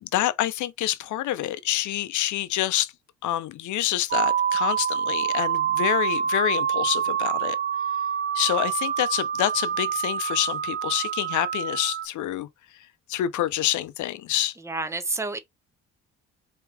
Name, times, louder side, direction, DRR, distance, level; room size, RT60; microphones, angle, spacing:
voice 1, 0.0-2.9 3.2-7.6 8.3-12.5 13.1-14.5, left 13 dB, 75° left, 0.6 m, -27 dB
sound 1, 4.1-12.1, right 8 dB, 35° right, 0.4 m, -26 dB
voice 2, 14.6-15.4, right 3 dB, 10° right, 0.8 m, -29 dB
4.7 x 3.0 x 3.3 m
cardioid pair, 90°, 30 cm